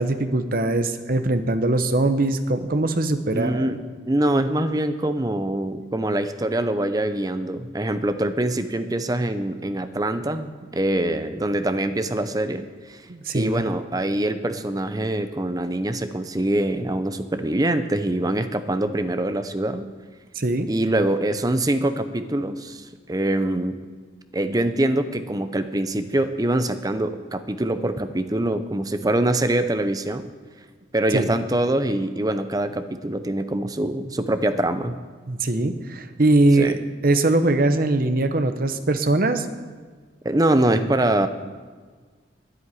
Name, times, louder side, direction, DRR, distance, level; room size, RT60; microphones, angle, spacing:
voice 1, 0.0-3.8 13.1-13.6 20.4-20.7 31.1-31.3 35.3-39.5, right 2 dB, 50° right, 8 dB, 0.8 m, -21 dB
voice 2, 3.3-3.8 4.1-13.0 13.3-19.9 20.7-23.8 24.3-30.3 30.9-35.0 36.6-36.7 40.2-41.3, right 1 dB, 20° right, 10 dB, 0.6 m, -24 dB
10.5 x 7.9 x 9.6 m, 1.5 s
head